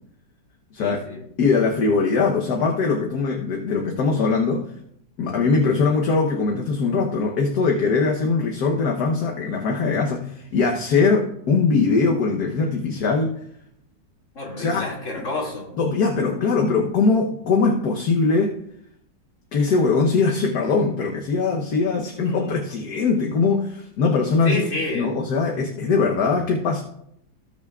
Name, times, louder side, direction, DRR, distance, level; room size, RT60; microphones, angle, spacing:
voice 1, 0.8-1.2 14.3-15.8 22.2-22.5 24.4-25.1, left 1 dB, 40° left, -2 dB, 2.7 m, -29 dB
voice 2, 1.4-4.7 5.2-13.3 14.6-14.8 15.8-18.5 19.5-24.6 24.9-26.8, left 4 dB, 60° left, 0 dB, 1.4 m, -21 dB
19.0 x 7.0 x 2.4 m, 0.73 s
omnidirectional pair, 2.0 m